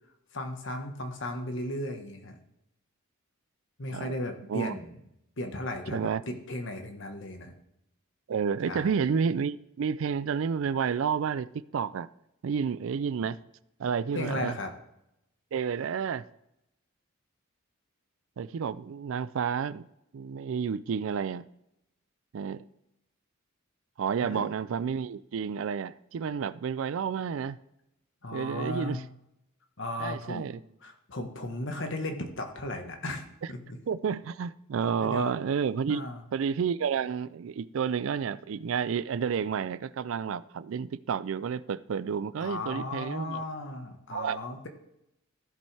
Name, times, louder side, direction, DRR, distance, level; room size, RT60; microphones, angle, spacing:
voice 1, 0.3-2.4 3.8-5.0 5.4-7.5 8.7-8.9 14.1-14.7 24.2-24.5 28.2-29.0 29.8-30.5 30.8-33.8 35.0-35.3 35.9-36.2 42.4-44.7, left 1 dB, 60° left, 5 dB, 1.3 m, -36 dB
voice 2, 8.3-11.5 11.7-12.1 12.4-13.4 13.8-14.6 15.5-16.2 18.4-19.8 20.1-21.5 22.3-22.6 24.0-27.6 28.3-29.0 30.0-30.6 33.9-36.0 36.3-43.4 44.1-44.4, right 6 dB, 65° right, 16 dB, 0.4 m, -30 dB
15.0 x 5.4 x 3.4 m, 0.83 s
head